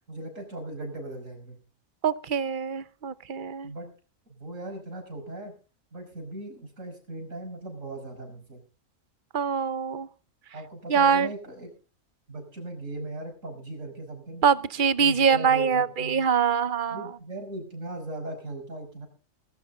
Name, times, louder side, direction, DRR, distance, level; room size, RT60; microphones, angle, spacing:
voice 1, 0.1-1.6 3.6-3.9 4.3-5.5 5.9-8.6 10.5-11.7 12.3-14.4 15.0-16.3 16.9-19.1, right 2 dB, 75° right, 3 dB, 6.0 m, -38 dB
voice 2, 2.0-3.7 9.3-10.1 10.9-11.3 14.4-17.1, right 6 dB, 45° right, 15 dB, 0.9 m, -24 dB
20.0 x 13.0 x 3.8 m, 0.35 s
omnidirectional pair, 1.4 m